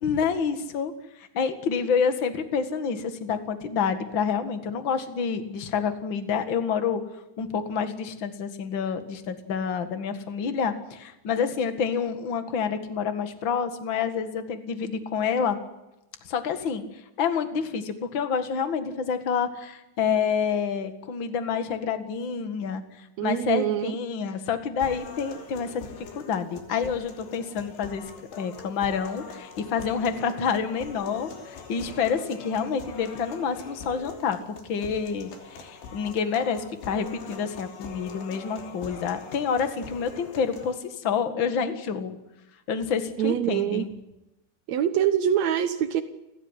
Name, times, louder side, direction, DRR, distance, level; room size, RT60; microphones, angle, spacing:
voice 1, 0.0-0.9 1.2-7.0 7.4-15.6 16.2-16.8 17.2-25.9 26.1-28.0 28.4-40.7 41.0-42.2 42.7-43.9, left 6 dB, 45° left, 9 dB, 1.7 m, -28 dB
voice 2, 23.2-23.9 43.2-43.8 44.7-46.0, right 10 dB, 85° right, 9 dB, 1.5 m, -24 dB
sound 1, 24.8-40.8, left 5 dB, 90° left, 5.1 m, -43 dB
29.5 x 14.0 x 9.9 m, 0.95 s
omnidirectional pair, 4.7 m